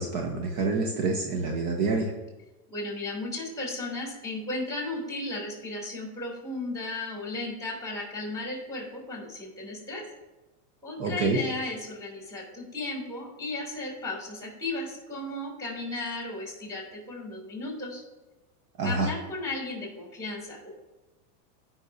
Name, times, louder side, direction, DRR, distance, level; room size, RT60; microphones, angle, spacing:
voice 1, 0.0-2.1 11.0-11.4 18.8-19.1, right 3 dB, 40° right, 2 dB, 1.1 m, -27 dB
voice 2, 2.7-10.1 10.8-18.0 18.8-20.7, left 2 dB, 5° left, -1 dB, 3.0 m, -35 dB
16.5 x 5.7 x 2.7 m, 1.1 s
supercardioid pair, 140°, 45 cm